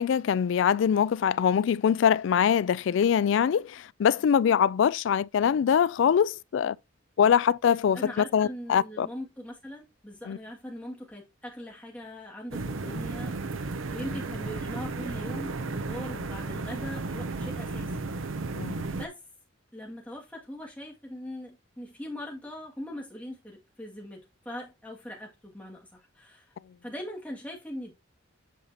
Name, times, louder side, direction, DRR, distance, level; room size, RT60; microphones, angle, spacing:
voice 1, 0.0-6.8 7.2-9.1 10.3-10.4 18.5-18.7, left 8 dB, 70° left, 0.3 m, -23 dB
voice 2, 7.9-13.4 13.9-18.1 18.9-19.2 19.7-26.4 26.8-27.9, left 1 dB, 5° left, 2.2 m, -41 dB
sound 1, 12.5-19.1, right 3 dB, 90° right, 0.7 m, -34 dB
8.5 x 5.6 x 2.9 m
head